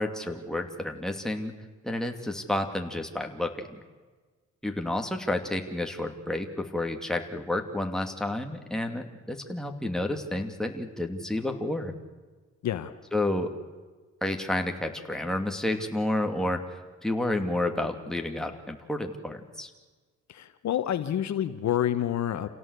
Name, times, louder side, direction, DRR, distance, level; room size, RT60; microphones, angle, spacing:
voice 1, 0.0-1.5 1.8-3.7 4.6-11.9 13.1-13.5 14.2-19.7, left 1 dB, ahead, 3 dB, 2.7 m, -30 dB
voice 2, 20.3-22.5, left 11 dB, 65° left, 10 dB, 1.3 m, -28 dB
28.5 x 17.0 x 8.4 m, 1.4 s
cardioid pair, 90°, 30 cm